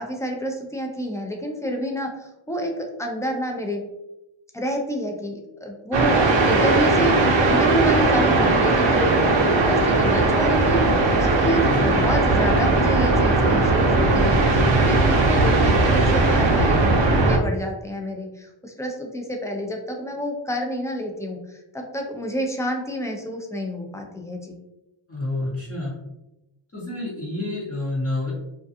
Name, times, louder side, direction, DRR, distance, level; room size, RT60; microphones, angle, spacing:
voice 1, 0.0-3.8 4.5-10.8 11.1-24.6, equal, 5° left, 2 dB, 0.4 m, -29 dB
sound 1, 5.9-17.4, right 2 dB, 70° right, 0.6 m, -18 dB
voice 2, 25.1-25.9 26.7-28.3, left 2 dB, 30° left, -6 dB, 0.8 m, -28 dB
2.4 x 2.3 x 2.6 m, 0.93 s
wide cardioid pair, 85°, 47 cm